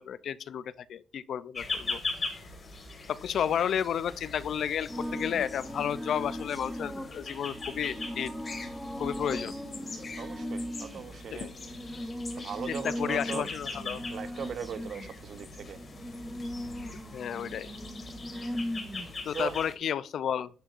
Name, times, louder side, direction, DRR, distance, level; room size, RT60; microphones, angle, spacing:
voice 1, 0.0-2.0 3.1-8.3 9.0-9.6 11.3-11.5 12.7-14.0 17.1-17.7 19.3-20.5, left 9 dB, 65° left, 0.4 m, -32 dB
sound 1, 1.5-19.7, left 3 dB, 40° left, 2.1 m, -41 dB
sound 2, 4.9-19.3, equal, 5° right, 1.1 m, -39 dB
voice 2, 10.2-11.5 12.4-13.5 14.1-15.8 19.3-19.5, right 7 dB, 60° right, 0.7 m, -38 dB
10.5 x 4.4 x 2.5 m
cardioid pair, 90°, 0 cm